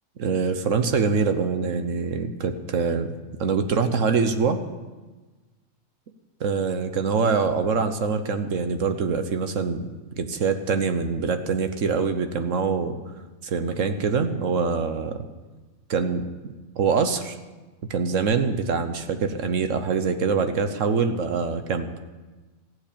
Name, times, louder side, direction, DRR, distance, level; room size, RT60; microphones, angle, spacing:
voice 1, 0.2-3.1 3.4-4.6 6.4-13.0 13.4-15.2 15.9-16.2 16.8-17.4 17.9-21.9, right 5 dB, 65° right, 8 dB, 1.3 m, -24 dB
15.0 x 7.9 x 8.6 m, 1.2 s
omnidirectional pair, 1.4 m